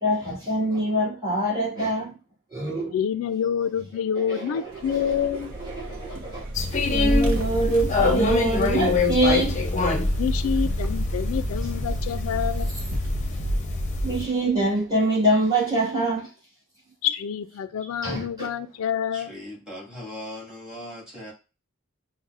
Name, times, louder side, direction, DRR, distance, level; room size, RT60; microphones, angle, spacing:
voice 1, 0.0-2.1 2.5-2.9 4.3-4.6 4.9-5.3 5.6-6.5 6.9-9.6 14.0-16.3 18.0-18.5, right 1 dB, 20° right, 1.7 m, -24 dB
voice 2, 2.9-5.5 10.2-12.7 17.0-19.4, left 8 dB, 75° left, 0.3 m, -27 dB
Vehicle, 4.6-15.0, equal, 85° right, 0.6 m, -36 dB
sound 1, 6.5-14.2, left 2 dB, 35° left, 0.6 m, -25 dB
voice 3, 19.1-21.3, left 1 dB, 5° right, 1.8 m, -39 dB
5.4 x 2.0 x 2.4 m
head